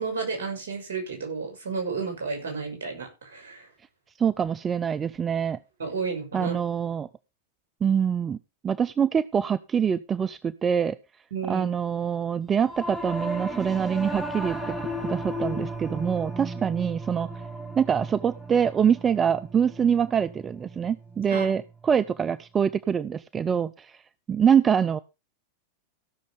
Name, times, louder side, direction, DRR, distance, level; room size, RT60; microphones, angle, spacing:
voice 1, 0.0-3.7 5.8-6.5 11.3-11.7 21.3-21.5 23.5-23.6, right 4 dB, 65° right, 3 dB, 6.6 m, -32 dB
voice 2, 4.2-5.6 6.3-7.1 7.8-8.4 8.6-11.0 11.5-14.6 15.0-17.3 17.8-23.9 24.3-25.0, right 7 dB, 20° right, 15 dB, 0.6 m, -24 dB
Singing / Musical instrument, 12.6-22.2, equal, ahead, 2.7 m, -35 dB
16.0 x 6.7 x 5.1 m, 0.27 s
figure-of-eight pair, 90°, 0 cm